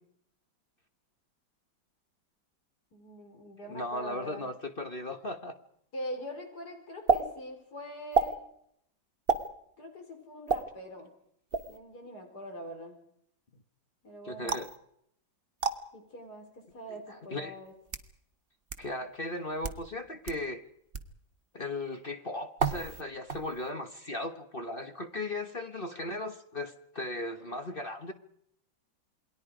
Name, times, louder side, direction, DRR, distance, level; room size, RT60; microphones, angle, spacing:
voice 1, 2.9-4.5 5.9-8.3 9.8-11.1 11.7-12.9 14.0-14.6 15.9-17.7, equal, 50° left, 3 dB, 5.3 m, -43 dB
voice 2, 3.7-5.6 14.2-14.7 16.9-17.5 18.8-20.6 21.5-28.1, left 1 dB, 30° left, 7 dB, 1.3 m, -37 dB
sound 1, 7.1-7.2 8.1-8.3 9.3-9.5 10.5-10.6 11.5-11.8 14.5-14.8 15.6-15.8 16.7-16.8 17.6-18.1 18.7-18.8 19.5-19.8 20.3-20.4 20.9-21.1 22.6-23.0 23.3-23.7, right 5 dB, 35° right, 1.2 m, -29 dB
28.5 x 21.5 x 5.0 m, 0.72 s
omnidirectional pair, 2.1 m